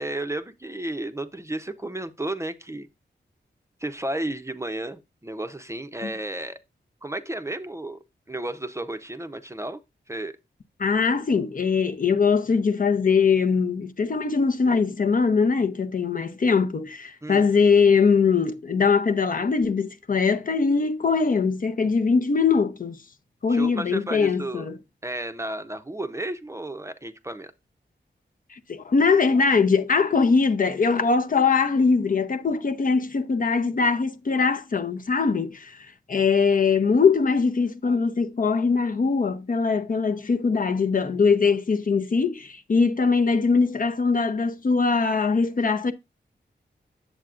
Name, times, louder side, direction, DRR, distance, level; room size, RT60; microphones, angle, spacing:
voice 1, 0.0-2.9 3.8-6.6 7.0-8.0 8.3-9.8 10.1-10.4 17.2-17.5 23.5-24.7 25.0-27.5, right 1 dB, 15° right, 0.6 m, -32 dB
voice 2, 10.8-23.0 23.4-24.8 28.5-45.9, left 5 dB, 50° left, 0.6 m, -22 dB
8.9 x 7.5 x 2.4 m
wide cardioid pair, 105°, 19 cm